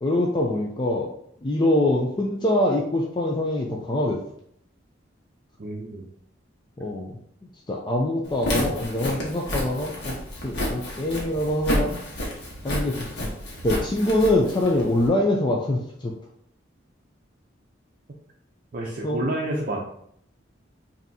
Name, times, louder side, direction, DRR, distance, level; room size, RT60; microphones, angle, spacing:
voice 1, 0.0-1.1 1.4-4.2 6.8-7.2 7.7-12.0 12.6-13.3 13.6-16.1 19.0-19.2, left 1 dB, 25° left, 0 dB, 0.4 m, -24 dB
voice 2, 5.6-6.0 18.7-19.8, right 1 dB, 45° right, -2 dB, 0.5 m, -29 dB
Walk footsteps, 8.3-15.1, left 1 dB, 60° left, 1.2 m, -30 dB
5.3 x 2.7 x 2.7 m, 0.69 s
head